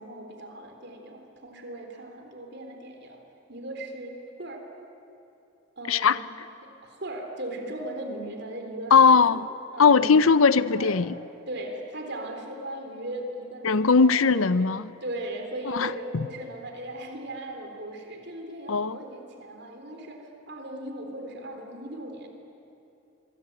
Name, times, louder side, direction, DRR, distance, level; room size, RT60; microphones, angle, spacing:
voice 1, 0.0-3.2 3.5-4.7 5.8-9.4 9.7-10.4 10.7-11.0 11.5-14.7 15.0-22.3, right 1 dB, 55° right, 3.6 m, -38 dB
voice 2, 5.9-6.2 8.9-9.5 9.8-11.1 13.6-14.8 15.7-16.2 18.7-19.0, left 5 dB, 75° left, 0.7 m, -19 dB
25.0 x 24.0 x 8.9 m
head